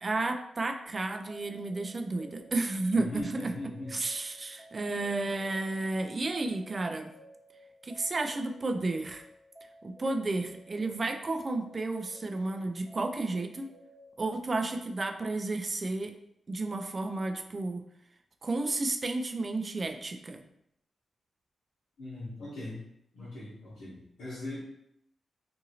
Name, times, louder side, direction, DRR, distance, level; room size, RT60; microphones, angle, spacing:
voice 1, 0.0-3.5 3.9-7.1 7.8-9.2 9.8-13.7 14.2-16.2 16.5-17.8 18.4-20.4, right 2 dB, 40° right, 6 dB, 0.3 m, -32 dB
sound 1, 0.9-14.1, equal, 10° left, 1.1 m, -55 dB
voice 2, 3.0-3.9 22.0-22.8 23.1-24.6, left 2 dB, 85° left, -11 dB, 1.0 m, -40 dB
2.7 x 2.6 x 2.7 m, 0.76 s
cardioid pair, 70°, 0 cm